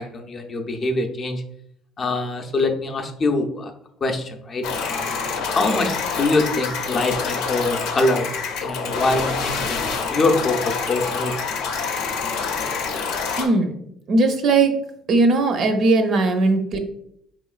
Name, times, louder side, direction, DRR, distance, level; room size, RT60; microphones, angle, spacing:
voice 1, 0.0-1.4 2.0-3.7 4.0-8.3 8.6-11.4, left 2 dB, 35° left, 3 dB, 0.5 m, -24 dB
sound 1, 4.6-13.5, left 5 dB, 80° left, 0.6 m, -26 dB
voice 2, 13.4-13.7 14.1-14.7 15.1-16.8, right 3 dB, 50° right, 6 dB, 0.5 m, -18 dB
4.3 x 3.0 x 2.3 m, 0.72 s
cardioid pair, 125°, 0 cm